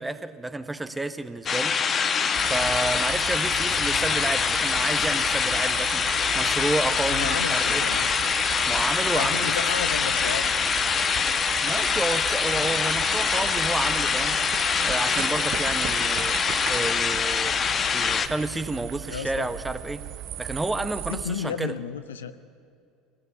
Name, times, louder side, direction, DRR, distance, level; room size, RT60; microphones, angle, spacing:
voice 1, 0.0-1.8 2.5-7.8 8.7-9.5 11.6-14.4 14.8-16.4 16.7-17.5 17.9-20.0 20.4-21.7, right 2 dB, 10° right, 10 dB, 1.3 m, -30 dB
sound 1, 1.5-18.3, left 6 dB, 35° left, 1.3 m, -24 dB
sound 2, 2.3-21.3, right 11 dB, 55° right, 1.0 m, -36 dB
voice 2, 7.1-8.1 9.1-10.4 19.1-19.5 21.1-22.4, left 7 dB, 80° left, 11 dB, 0.8 m, -32 dB
23.5 x 15.5 x 9.7 m, 2.3 s
hypercardioid pair, 70°, 0 cm